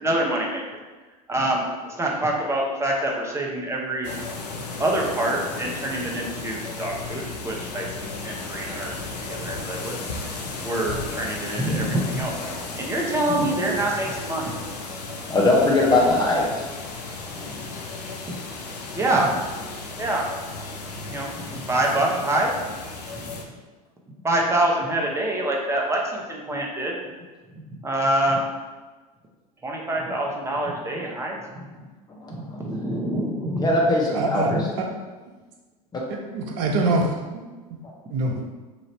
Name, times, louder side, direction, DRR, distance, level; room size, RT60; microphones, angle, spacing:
voice 1, 0.0-0.8 1.3-4.1 4.6-8.9 9.2-12.4 12.7-14.5 18.3-18.4 18.9-19.5 20.0-20.3 21.0-22.5 23.1-23.3 24.2-27.0 27.5-28.5 29.6-31.7 32.3-33.7 34.5-34.6, right 1 dB, 15° right, -1 dB, 0.8 m, -26 dB
sound 1, 4.0-23.4, left 3 dB, 85° left, 0.6 m, -34 dB
voice 2, 15.3-16.7 17.4-17.7 32.2-32.6 33.6-34.4 35.9-36.0, left 2 dB, 20° left, -3 dB, 0.7 m, -21 dB
voice 3, 33.9-34.5 34.8-34.9 36.3-37.5 38.1-38.3, right 2 dB, 55° right, 1 dB, 0.8 m, -24 dB
3.1 x 2.5 x 4.2 m, 1.3 s
hypercardioid pair, 85°, 20 cm